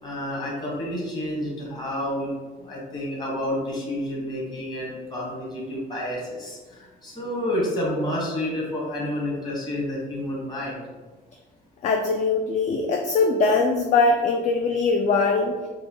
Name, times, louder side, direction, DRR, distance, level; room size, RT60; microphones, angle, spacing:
voice 1, 0.0-10.8, left 1 dB, 25° left, -5 dB, 1.5 m, -29 dB
voice 2, 11.8-15.5, left 3 dB, 45° left, 3 dB, 0.4 m, -21 dB
4.6 x 2.3 x 2.9 m, 1.3 s
cardioid pair, 110°, 17 cm